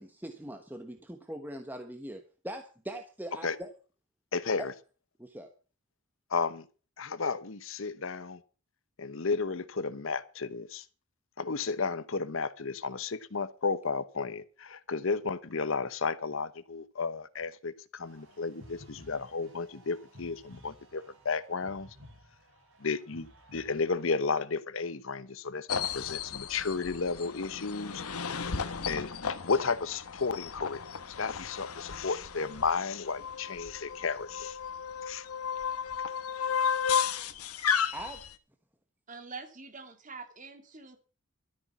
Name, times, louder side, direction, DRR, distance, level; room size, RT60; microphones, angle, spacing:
voice 1, 0.0-3.7 4.6-4.7 5.2-5.5 37.9-38.2, right 1 dB, 10° right, 1.1 m, -41 dB
voice 2, 4.3-4.7 6.3-6.7 7.0-8.4 9.0-10.8 11.4-21.9 22.8-28.0 28.9-30.8 31.1-34.6 35.1-35.2, left 4 dB, 65° left, 0.9 m, -33 dB
sound 1, 18.0-24.0, left 1 dB, 60° right, 7.8 m, -55 dB
sound 2, 25.7-38.3, left 7 dB, 90° left, 1.2 m, -34 dB
voice 3, 39.1-41.0, right 4 dB, 35° right, 2.3 m, -45 dB
13.0 x 9.7 x 7.0 m
head